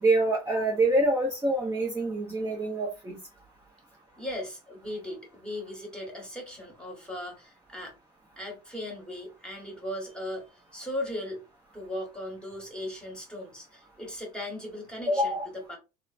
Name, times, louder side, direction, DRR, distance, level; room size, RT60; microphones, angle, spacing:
voice 1, 0.0-3.2 15.1-15.5, right 1 dB, 15° right, 0.8 m, -26 dB
voice 2, 4.2-7.9 8.4-10.4 10.7-11.4 11.7-15.8, left 1 dB, 5° left, 1.4 m, -38 dB
2.9 x 2.1 x 2.5 m
supercardioid pair, 85°, 18 cm